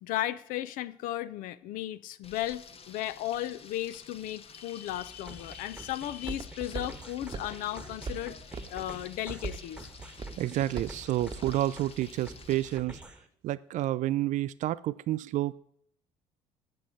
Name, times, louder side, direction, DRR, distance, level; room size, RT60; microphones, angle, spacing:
voice 1, 0.0-8.4 8.7-9.9, left 14 dB, 65° left, 0.6 m, -35 dB
Frying (food), 2.2-12.8, left 6 dB, 40° left, 1.0 m, -51 dB
Walk footsteps, 4.9-12.8, right 4 dB, 30° right, 0.9 m, -43 dB
sound 1, 5.3-13.3, right 1 dB, 5° right, 1.3 m, -49 dB
voice 2, 10.4-13.0 13.4-15.5, right 14 dB, 55° right, 0.4 m, -29 dB
8.8 x 7.1 x 7.7 m
hypercardioid pair, 60°, 15 cm